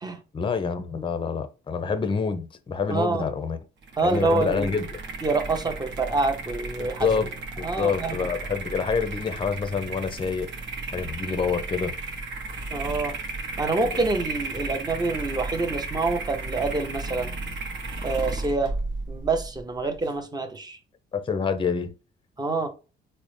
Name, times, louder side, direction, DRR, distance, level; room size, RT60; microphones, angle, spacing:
voice 1, 0.3-3.6 4.0-5.0 6.8-10.5 10.9-11.9 13.8-14.0 21.1-21.9, left 5 dB, 25° left, 0.5 m, -27 dB
voice 2, 2.9-3.3 4.0-4.7 5.2-7.1 7.6-8.3 12.7-13.2 13.6-17.3 18.0-18.7 19.1-20.8 22.4-22.7, right 3 dB, 20° right, 0.7 m, -26 dB
sound 1, 3.8-20.2, right 3 dB, 65° right, 0.9 m, -34 dB
3.8 x 2.1 x 3.1 m
cardioid pair, 90°, 20 cm